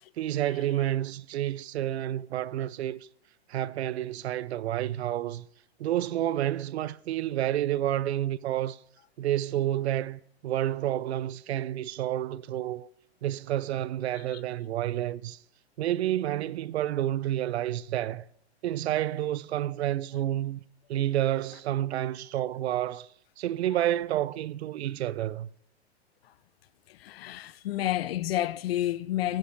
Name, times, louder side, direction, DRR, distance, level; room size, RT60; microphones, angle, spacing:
voice 1, 0.2-3.1 3.5-5.5 5.8-8.8 9.2-12.9 13.2-15.4 15.8-18.3 18.6-20.6 20.9-23.1 23.4-25.5, right 12 dB, 70° right, 0.5 m, -29 dB
voice 2, 26.9-29.4, left 13 dB, 60° left, 0.6 m, -30 dB
10.5 x 5.7 x 6.3 m
hypercardioid pair, 120°, 33 cm